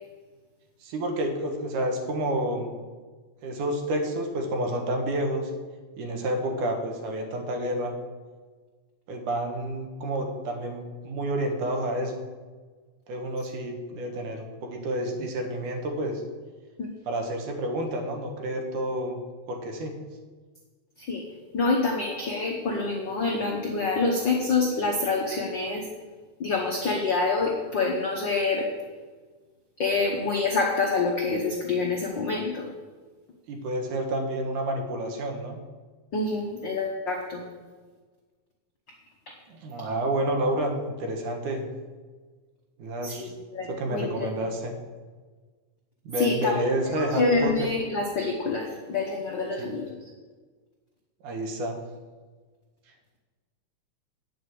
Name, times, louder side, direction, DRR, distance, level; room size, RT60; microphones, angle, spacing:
voice 1, 0.8-2.8 3.4-5.5 6.0-7.9 9.1-12.2 13.1-16.2 17.1-19.2 19.5-20.0 33.5-35.6 39.5-40.7 41.0-41.7 42.8-43.3 43.7-44.7 46.1-47.7 49.6-49.7 51.2-51.8, right 1 dB, 75° right, 3 dB, 2.8 m, -29 dB
voice 2, 21.5-25.8 26.4-28.7 29.8-32.7 36.1-37.4 43.0-44.3 46.2-46.6 47.0-49.9, left 3 dB, 70° left, 0 dB, 1.1 m, -26 dB
9.4 x 6.6 x 7.7 m, 1.4 s
omnidirectional pair, 3.7 m